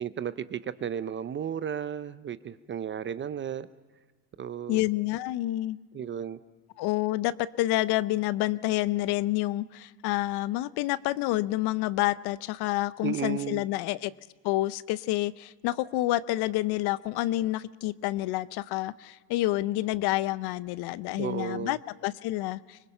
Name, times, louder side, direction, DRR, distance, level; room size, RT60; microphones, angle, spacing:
voice 1, 0.0-3.7 4.4-4.8 5.9-6.4 13.0-13.6 21.2-21.8, right 8 dB, 25° right, 15 dB, 0.5 m, -34 dB
voice 2, 4.7-5.8 6.8-14.1 14.4-21.8 22.0-22.8, left 17 dB, 55° left, 18 dB, 0.7 m, -28 dB
24.5 x 20.5 x 5.6 m, 1.3 s
supercardioid pair, 95°, 49 cm